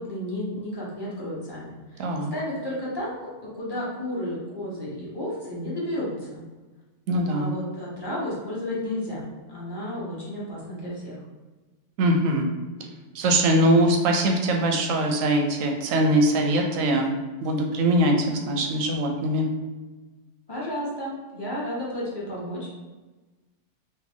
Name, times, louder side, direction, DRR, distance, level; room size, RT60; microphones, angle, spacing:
voice 1, 0.0-3.3 3.5-6.4 7.3-11.2 20.5-22.7, left 1 dB, 20° left, -7 dB, 1.0 m, -32 dB
voice 2, 2.0-2.3 7.1-7.5 12.0-12.5 13.1-17.1 17.4-18.2 18.5-19.5, right 1 dB, 90° right, 2 dB, 1.0 m, -22 dB
3.2 x 2.2 x 3.5 m, 1.2 s
omnidirectional pair, 1.3 m